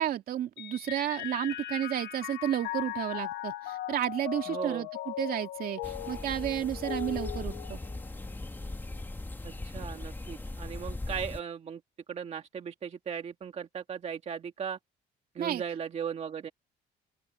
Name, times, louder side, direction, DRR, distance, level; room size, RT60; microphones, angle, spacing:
voice 1, 0.0-7.8 15.4-15.6, right 11 dB, 60° right, 2.5 m, -32 dB
Mallet percussion, 0.6-8.3, left 16 dB, 85° left, 1.2 m, -39 dB
voice 2, 4.5-4.9 9.4-11.8 12.1-14.8 15.3-16.5, right 7 dB, 40° right, 1.7 m, -37 dB
sound 1, 5.8-11.4, left 2 dB, 10° left, 1.6 m, -39 dB
open air
cardioid pair, 110°, 17 cm